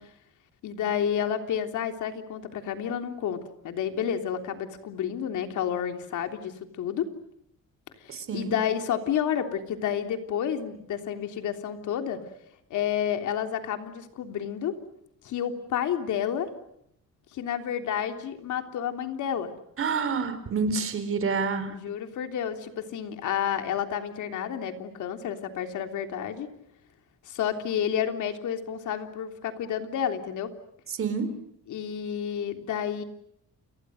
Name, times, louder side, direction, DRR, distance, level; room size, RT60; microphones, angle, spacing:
voice 1, 0.6-7.1 8.0-12.2 12.7-14.8 15.2-16.5 17.3-19.5 21.7-26.5 27.2-30.5 31.7-33.0, left 9 dB, 75° left, 6 dB, 3.4 m, -30 dB
voice 2, 8.1-8.5 19.8-21.7 30.9-31.3, right 5 dB, 45° right, 11 dB, 4.3 m, -28 dB
29.5 x 29.5 x 6.5 m, 0.74 s
cardioid pair, 140°, 30 cm